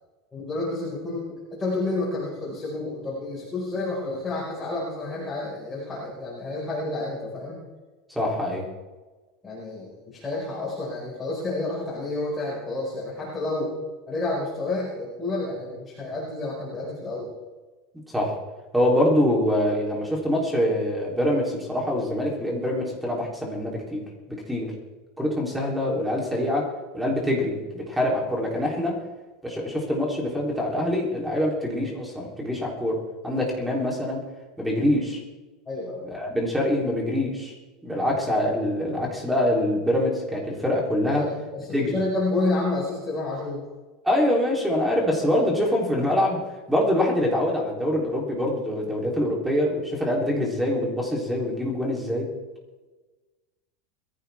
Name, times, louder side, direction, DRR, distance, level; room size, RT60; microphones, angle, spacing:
voice 1, 0.3-7.6 9.4-13.7 14.1-17.3 35.6-36.0 41.1-43.6, left 2 dB, 10° left, -7 dB, 5.1 m, -30 dB
voice 2, 8.1-8.7 18.1-18.3 18.7-24.7 25.2-26.7 26.9-29.0 29.4-33.0 33.2-34.2 34.6-35.2 36.1-37.5 37.8-41.2 41.7-42.0 44.0-46.4 46.7-52.3, left 1 dB, 5° right, -1 dB, 3.4 m, -24 dB
22.0 x 14.5 x 3.6 m, 1.2 s
supercardioid pair, 165°, 0 cm